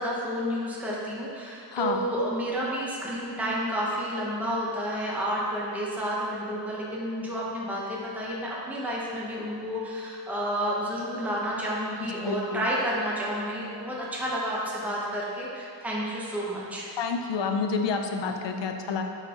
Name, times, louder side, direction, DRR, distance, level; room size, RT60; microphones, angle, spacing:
voice 1, 0.0-16.9, equal, 5° right, -5 dB, 0.8 m, -30 dB
voice 2, 1.7-2.0 12.2-12.6 17.0-19.0, left 5 dB, 85° left, 4 dB, 0.6 m, -29 dB
8.8 x 4.1 x 2.9 m, 2.6 s
wide cardioid pair, 120°, 42 cm